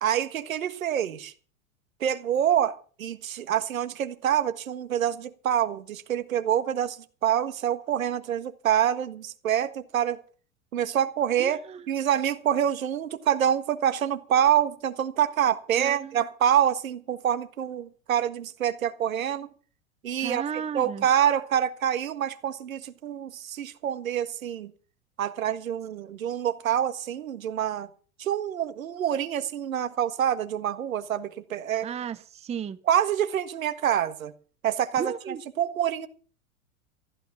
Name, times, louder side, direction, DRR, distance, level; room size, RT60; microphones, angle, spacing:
voice 1, 0.0-1.3 2.0-10.2 10.7-19.5 20.0-20.4 20.7-24.7 25.2-27.9 28.2-31.9 32.9-34.3 34.6-36.1, right 10 dB, 80° right, 1.6 m, -26 dB
voice 2, 11.4-11.8 15.8-16.2 20.2-21.0 31.8-32.8 35.0-35.4, right 7 dB, 15° right, 0.7 m, -34 dB
15.0 x 11.5 x 6.0 m
hypercardioid pair, 100°, 40 cm